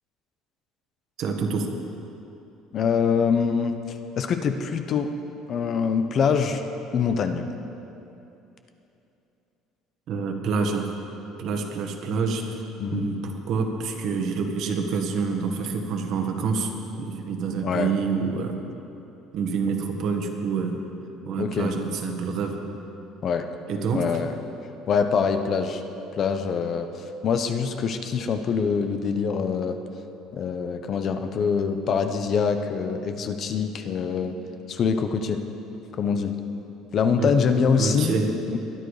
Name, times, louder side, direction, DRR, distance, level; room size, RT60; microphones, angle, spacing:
voice 1, 1.2-1.7 10.1-10.9 11.4-12.6 12.9-18.6 19.3-20.8 21.2-22.6 23.7-24.2 37.2-37.3 37.8-38.3, right 5 dB, 55° right, 4 dB, 1.7 m, -27 dB
voice 2, 2.7-5.1 5.5-6.6 6.9-7.4 12.8-13.1 17.6-17.9 21.4-21.7 23.2-23.5 23.9-24.3 24.9-25.8 26.2-26.9 27.2-29.8 30.3-34.4 34.7-35.4 36.0-36.4 36.9-38.2 38.5-38.6, left 6 dB, 40° left, 7 dB, 0.9 m, -24 dB
21.5 x 10.5 x 5.0 m, 2.9 s
cardioid pair, 140°, 0 cm